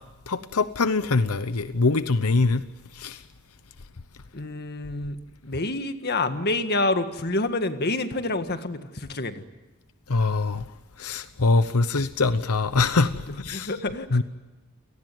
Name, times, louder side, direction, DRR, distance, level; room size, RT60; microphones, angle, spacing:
voice 1, 0.3-2.6 3.0-3.2 10.1-10.6 11.0-13.7 14.1-14.2, left 3 dB, 90° left, 0.9 m, -23 dB
voice 2, 4.3-5.2 5.4-9.4 13.5-14.2, left 2 dB, 45° left, 1.8 m, -27 dB
29.0 x 19.0 x 9.3 m
head